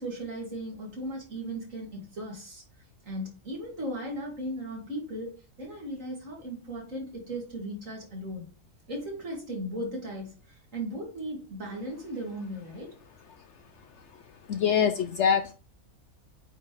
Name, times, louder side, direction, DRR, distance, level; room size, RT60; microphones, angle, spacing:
voice 1, 0.0-2.6 3.1-5.3 5.6-8.5 8.9-10.3 10.7-12.9, right 1 dB, 60° right, 2.8 m, -36 dB
voice 2, 14.5-15.5, left 7 dB, 65° left, 0.7 m, -24 dB
8.6 x 4.4 x 3.2 m
omnidirectional pair, 1.5 m